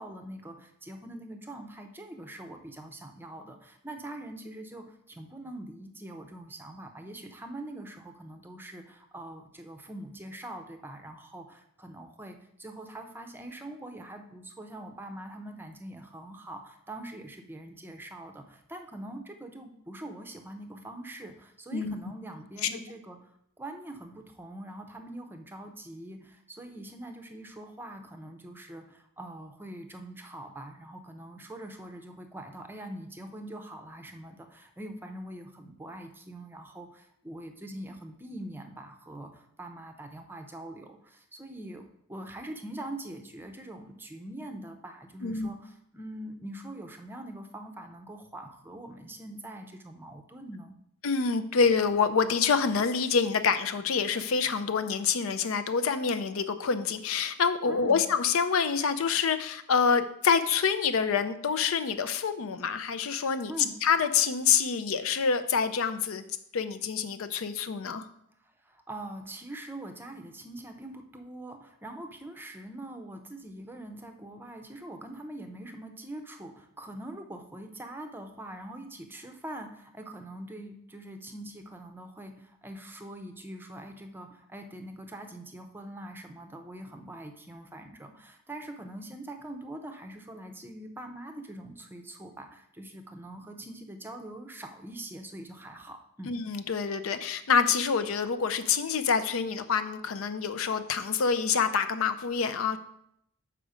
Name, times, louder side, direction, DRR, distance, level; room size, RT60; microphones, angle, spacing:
voice 1, 0.0-41.8 42.1-50.8 57.7-58.0 63.5-63.7 68.4-96.4, right 1 dB, 10° right, 5 dB, 0.6 m, -43 dB
voice 2, 51.0-63.5 63.8-66.2 66.5-68.1 96.3-102.8, left 6 dB, 70° left, 10 dB, 0.5 m, -27 dB
6.7 x 4.9 x 5.0 m, 0.72 s
head